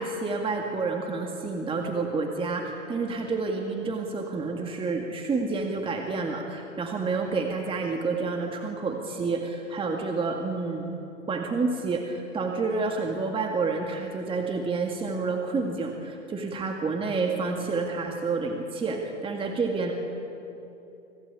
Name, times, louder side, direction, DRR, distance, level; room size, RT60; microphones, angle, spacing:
voice 1, 0.0-11.0 11.3-19.9, right 4 dB, 15° right, 3 dB, 2.0 m, -29 dB
26.0 x 16.0 x 8.7 m, 2.9 s
hypercardioid pair, 120°, 37 cm